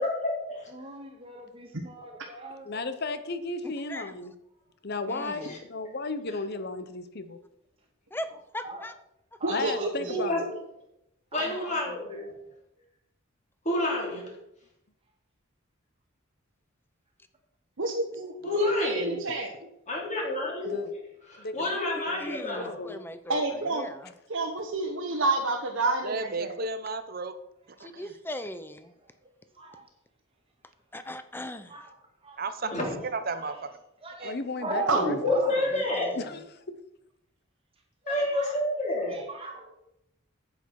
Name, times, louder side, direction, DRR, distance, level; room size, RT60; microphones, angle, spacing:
voice 1, 0.0-0.7 5.4-5.6 10.1-10.6 11.3-12.3 13.6-14.3 18.4-19.1 19.9-21.0 21.3-22.9 32.6-33.0 35.2-36.2 38.1-39.2, left 1 dB, 35° left, -1 dB, 3.2 m, -29 dB
voice 2, 0.7-2.8 8.6-8.8 9.4-10.1 11.3-11.7 12.1-12.2 27.8-27.9 29.2-29.3 29.6-29.9 31.7-31.9 32.2-32.4 33.3-33.6 34.0-35.7 38.0-38.5 39.0-39.7, right 2 dB, 25° right, 1 dB, 1.8 m, -37 dB
voice 3, 2.7-4.3 4.8-7.4 9.5-10.4 20.6-20.9 21.4-21.7 22.1-23.0 34.2-35.2 36.2-36.4, left 3 dB, 50° left, 11 dB, 0.8 m, -34 dB
voice 4, 3.6-4.2 5.1-5.6 8.1-8.9 21.9-24.1 27.8-28.9 30.9-31.8 35.7-36.4, left 1 dB, 10° left, 10 dB, 0.6 m, -39 dB
voice 5, 9.4-10.2 17.8-19.7 23.3-23.9 24.3-26.5 34.9-35.0, right 2 dB, 65° right, 0 dB, 1.2 m, -29 dB
voice 6, 26.0-27.3 27.8-28.1 32.4-32.7 33.1-33.5 34.2-34.3, right 3 dB, 45° right, 10 dB, 0.9 m, -33 dB
9.8 x 8.2 x 4.7 m, 0.81 s
head